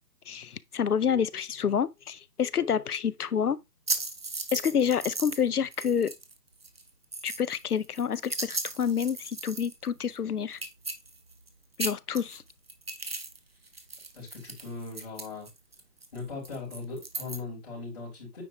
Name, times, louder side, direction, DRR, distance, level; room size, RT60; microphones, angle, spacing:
voice 1, 0.3-3.6 4.5-6.1 7.2-10.6 11.8-12.4, left 7 dB, 65° left, 0.6 m, -28 dB
sound 1, 3.9-5.5 5.7-6.3 6.6-9.9 10.2-10.3 10.5-11.5 11.7-13.4 13.7-17.4, right 3 dB, 35° right, 0.9 m, -36 dB
voice 2, 14.1-15.5 16.1-18.4, left 4 dB, 25° left, 4.3 m, -39 dB
9.3 x 4.5 x 3.0 m
hypercardioid pair, 175°, 49 cm